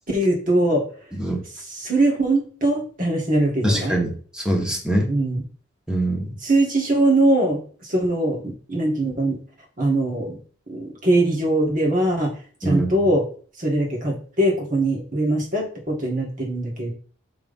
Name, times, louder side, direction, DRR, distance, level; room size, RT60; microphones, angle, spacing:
voice 1, 0.1-0.8 1.7-4.0 5.1-5.4 6.4-9.4 9.8-10.4 10.7-12.3 12.6-13.2 13.6-16.9, right 1 dB, 45° right, 0 dB, 1.9 m, -21 dB
voice 2, 3.6-5.1 5.9-6.3 12.6-12.9, right 1 dB, 5° right, 0 dB, 1.2 m, -23 dB
6.1 x 3.2 x 5.4 m, 0.42 s
head